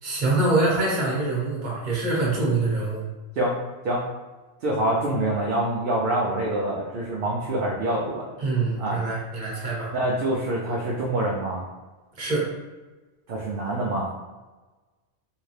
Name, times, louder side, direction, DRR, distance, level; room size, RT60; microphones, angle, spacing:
voice 1, 0.0-3.0 8.4-9.9 12.2-12.5, right 2 dB, 45° right, -5 dB, 1.1 m, -24 dB
voice 2, 4.6-8.3 8.8-9.0 9.9-11.6 13.3-14.1, right 1 dB, 60° right, -4 dB, 0.7 m, -25 dB
3.3 x 2.8 x 3.2 m, 1.2 s
omnidirectional pair, 1.2 m